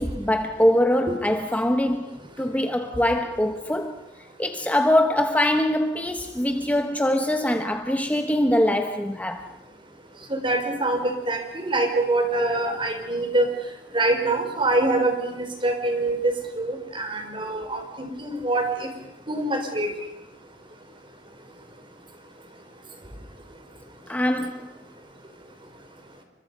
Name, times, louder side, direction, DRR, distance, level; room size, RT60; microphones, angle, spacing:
voice 1, 0.0-4.0 4.4-9.4 24.1-24.7, left 1 dB, 10° left, 1.1 m, -23 dB
voice 2, 10.3-13.5 13.9-18.9 19.3-19.9, right 2 dB, 30° right, 4.4 m, -25 dB
29.5 x 25.0 x 5.5 m
head